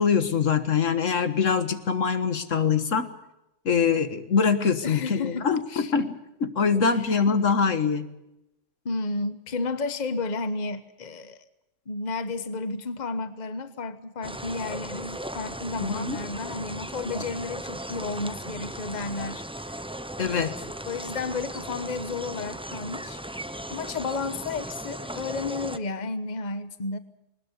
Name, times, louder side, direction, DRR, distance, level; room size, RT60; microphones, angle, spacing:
voice 1, 0.0-3.1 3.6-8.1 15.8-16.2 20.2-20.5, left 6 dB, 85° left, 10 dB, 1.8 m, -24 dB
voice 2, 4.8-5.9 6.8-7.2 8.8-11.4 11.9-19.8 20.2-20.5 20.9-23.2 23.7-27.0, left 3 dB, 35° left, 11 dB, 1.2 m, -32 dB
sound 1, 14.2-25.8, right 1 dB, 5° right, 0.6 m, -37 dB
20.5 x 20.0 x 8.2 m, 0.89 s
omnidirectional pair, 1.3 m